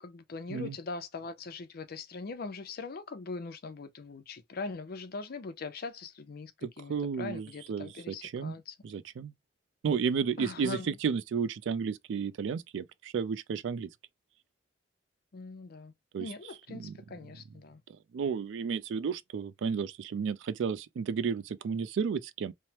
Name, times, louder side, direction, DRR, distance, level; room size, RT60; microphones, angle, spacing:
voice 1, 0.0-8.7 10.4-11.0 15.3-15.9 16.2-17.8, left 4 dB, 55° left, 0.5 m, -41 dB
voice 2, 6.6-8.5 8.8-9.3 9.8-13.9 16.1-16.3 16.7-16.9 17.9-22.5, right 6 dB, 80° right, 0.3 m, -32 dB
3.1 x 2.1 x 2.8 m
head